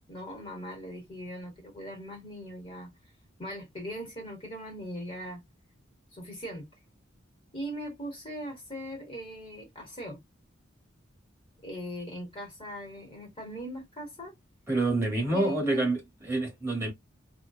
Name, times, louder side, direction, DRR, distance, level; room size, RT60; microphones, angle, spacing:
voice 1, 0.1-2.9 3.4-5.4 6.1-6.6 7.5-10.2 11.6-14.3 15.3-15.9, equal, 30° left, 1.0 m, -39 dB
voice 2, 14.7-16.9, right 2 dB, 15° right, 1.0 m, -27 dB
2.5 x 2.1 x 2.3 m
head